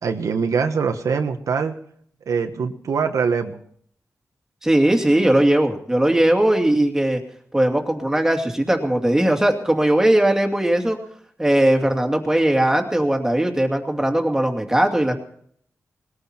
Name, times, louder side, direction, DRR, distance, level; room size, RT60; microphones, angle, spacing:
voice 1, 0.0-1.7 2.3-3.6, right 5 dB, 90° right, 5 dB, 1.5 m, -23 dB
voice 2, 4.6-7.2 7.5-11.0 11.4-15.2, right 1 dB, 10° right, 3 dB, 2.5 m, -19 dB
20.5 x 14.5 x 4.5 m, 0.62 s
wide cardioid pair, 135°, 6 cm